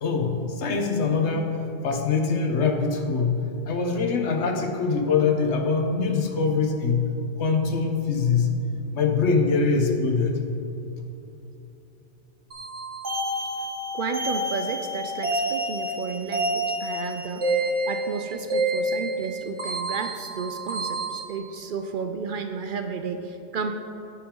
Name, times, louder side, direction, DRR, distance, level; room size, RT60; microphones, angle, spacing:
voice 1, 0.0-1.5 1.8-8.6 8.9-10.4 11.0-11.1, left 4 dB, 80° left, 4 dB, 1.2 m, -23 dB
sound 1, 12.5-21.2, right 1 dB, 85° right, 1.9 m, -28 dB
voice 2, 13.9-23.7, right 5 dB, 60° right, 7 dB, 0.6 m, -32 dB
9.3 x 8.8 x 3.7 m, 2.9 s
omnidirectional pair, 1.1 m